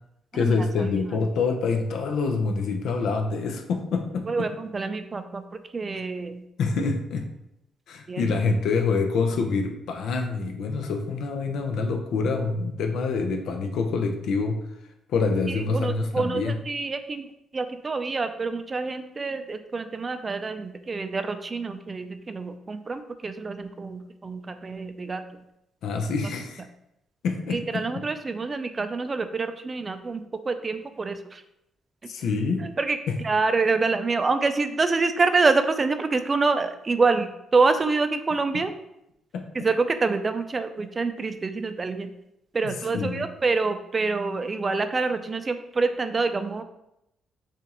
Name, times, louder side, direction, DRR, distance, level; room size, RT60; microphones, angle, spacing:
voice 1, 0.3-4.5 6.6-7.2 7.9-14.6 15.1-16.6 25.8-26.6 27.2-28.1 32.1-32.6 33.1-33.2 38.5-38.6 39.3-39.4 42.6-43.2, left 4 dB, 75° left, 5 dB, 0.6 m, -26 dB
voice 2, 4.3-5.4 5.7-6.4 8.1-8.3 15.7-17.3 17.5-25.2 27.5-31.4 32.8-33.0 33.2-38.7 39.6-42.1 42.5-46.6, right 4 dB, 30° right, 9 dB, 0.4 m, -26 dB
6.8 x 2.5 x 3.0 m, 0.83 s
cardioid pair, 90°, 0 cm